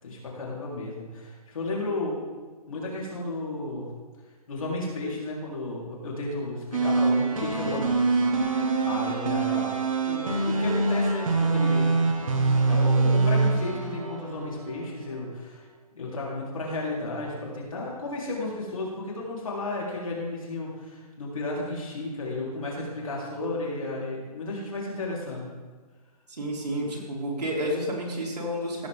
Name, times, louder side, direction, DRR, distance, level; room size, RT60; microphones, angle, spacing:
voice 1, 0.0-2.2 2.7-3.9 4.5-8.6 8.8-9.7 10.0-11.9 12.7-15.7 16.0-25.5, left 2 dB, 55° left, -4 dB, 3.7 m, -33 dB
sound 1, 6.7-14.9, right 3 dB, 55° right, 1.5 m, -24 dB
voice 2, 26.3-28.9, equal, 85° right, -4 dB, 3.9 m, -30 dB
16.0 x 7.6 x 3.6 m, 1.4 s
hypercardioid pair, 180°, 20 cm